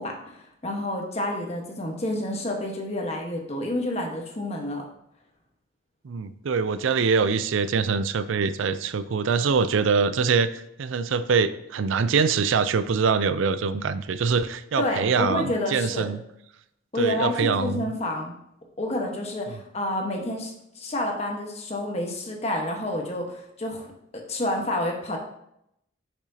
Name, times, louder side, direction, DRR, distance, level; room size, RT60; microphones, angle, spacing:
voice 1, 0.0-4.8 14.8-16.1 16.9-18.4 18.8-25.2, left 1 dB, 35° left, 1 dB, 1.3 m, -29 dB
voice 2, 6.0-16.2 17.0-17.9, right 5 dB, 85° right, 13 dB, 0.4 m, -24 dB
10.0 x 6.0 x 2.8 m, 0.78 s
head